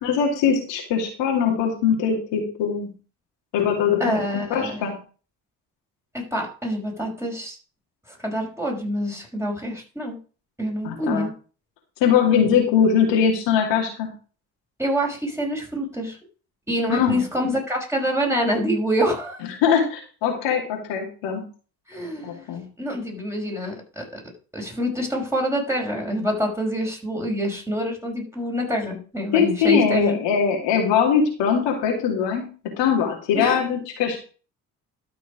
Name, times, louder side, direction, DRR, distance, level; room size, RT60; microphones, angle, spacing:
voice 1, 0.0-2.9 3.5-4.9 10.8-11.3 12.0-14.1 16.9-17.2 19.6-21.4 22.2-22.6 29.3-32.5 32.8-34.2, left 7 dB, 65° left, 1 dB, 2.7 m, -21 dB
voice 2, 4.0-4.8 6.1-7.6 8.1-10.2 10.6-11.3 14.8-16.2 16.7-19.4 21.9-22.4 22.8-24.0 24.5-30.2 33.3-33.6, equal, 5° right, -1 dB, 5.6 m, -26 dB
12.5 x 6.0 x 5.0 m, 0.37 s
figure-of-eight pair, 45°, 46 cm